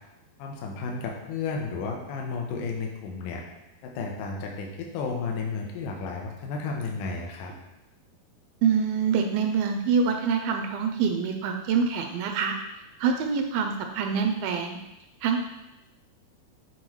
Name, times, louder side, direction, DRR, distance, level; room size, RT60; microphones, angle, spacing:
voice 1, 0.4-3.4 3.8-7.5, left 4 dB, 75° left, 0 dB, 2.2 m, -33 dB
voice 2, 8.6-12.6 13.0-14.8 15.2-15.4, right 6 dB, 80° right, 4 dB, 2.2 m, -25 dB
7.8 x 4.3 x 3.1 m, 0.97 s
omnidirectional pair, 4.3 m